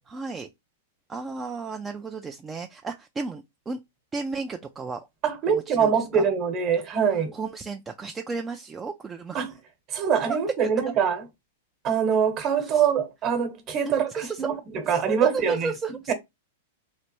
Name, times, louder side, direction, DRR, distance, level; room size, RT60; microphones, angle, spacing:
voice 1, 0.1-0.5 1.1-3.8 4.1-5.0 5.5-6.2 7.3-9.5 10.3-10.4 12.6-12.9 13.9-14.4 14.9-16.1, right 4 dB, 15° right, 0.3 m, -33 dB
voice 2, 5.2-7.4 9.3-9.5 9.9-11.2 11.8-15.7 16.1-16.2, right 7 dB, 40° right, 1.0 m, -24 dB
3.1 x 2.6 x 2.9 m
hypercardioid pair, 125°, 0 cm